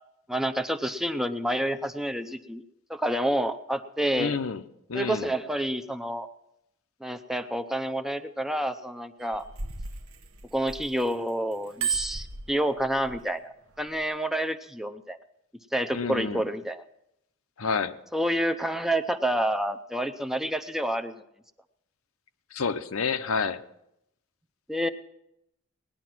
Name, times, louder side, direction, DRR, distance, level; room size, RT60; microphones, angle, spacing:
voice 1, 0.3-2.6 2.9-4.3 4.9-6.3 7.0-9.4 10.5-15.2 15.7-16.8 18.1-21.2 24.7-24.9, right 1 dB, ahead, 9 dB, 0.6 m, -28 dB
voice 2, 4.2-4.6 4.9-5.3 15.9-16.4 17.6-18.0 22.5-23.6, left 5 dB, 80° left, 9 dB, 0.8 m, -29 dB
Bicycle bell, 9.2-11.1 11.5-13.2 13.8-14.0, right 5 dB, 80° right, 1.0 m, -33 dB
19.0 x 10.5 x 6.0 m, 0.82 s
head